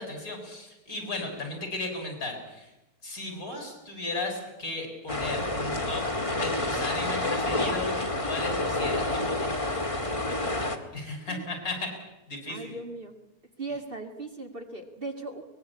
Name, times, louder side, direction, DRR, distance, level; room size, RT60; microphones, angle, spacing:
voice 1, 0.0-2.7 3.0-6.1 6.3-9.5 10.9-11.9 12.3-12.8, left 2 dB, 60° left, 4 dB, 7.1 m, -35 dB
sound 1, 5.1-10.8, left 2 dB, 20° left, 2.2 m, -29 dB
voice 2, 10.3-10.7 11.3-11.4 12.5-13.1 13.6-15.4, right 2 dB, 35° right, 5 dB, 2.4 m, -38 dB
23.5 x 21.0 x 8.5 m, 1.0 s
omnidirectional pair, 1.7 m